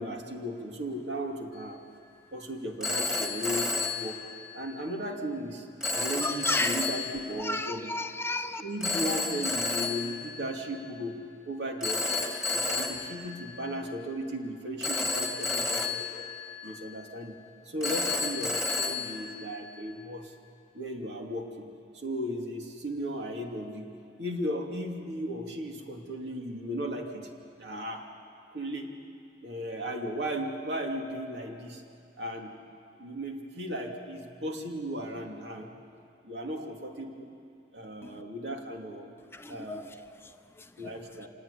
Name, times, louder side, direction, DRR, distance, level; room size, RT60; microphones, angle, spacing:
voice 1, 0.0-1.8 2.3-4.2 4.5-7.9 8.6-12.2 12.5-16.3 16.6-17.4 17.7-20.3 20.7-21.7 21.9-23.9 24.2-27.3 27.6-28.1 28.5-29.0 29.4-31.8 32.2-32.5 33.0-35.7 36.2-37.3 37.7-39.1 39.5-40.1 40.8-41.3, equal, 65° right, 2 dB, 2.7 m, -36 dB
Telephone, 1.5-1.9 2.8-4.8 5.8-7.5 8.8-11.0 11.8-14.1 14.8-17.1 17.8-20.0, left 3 dB, ahead, 2.3 m, -32 dB
voice 2, 6.2-6.8 7.4-8.6 38.0-38.2 39.3-41.0, left 2 dB, 15° left, 7 dB, 0.7 m, -34 dB
26.0 x 18.0 x 9.9 m, 2.6 s
head